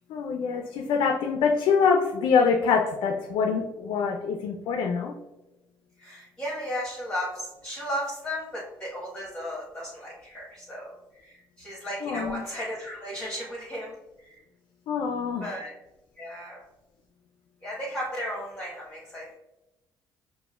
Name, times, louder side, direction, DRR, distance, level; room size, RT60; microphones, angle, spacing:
voice 1, 0.1-5.1 12.0-12.4 14.9-15.5, left 5 dB, 75° left, 3 dB, 0.4 m, -25 dB
voice 2, 6.0-14.4 15.4-15.7 16.2-16.6 17.6-19.3, equal, 10° left, -7 dB, 1.2 m, -35 dB
4.7 x 2.1 x 2.2 m, 0.99 s
supercardioid pair, 65°, 9 cm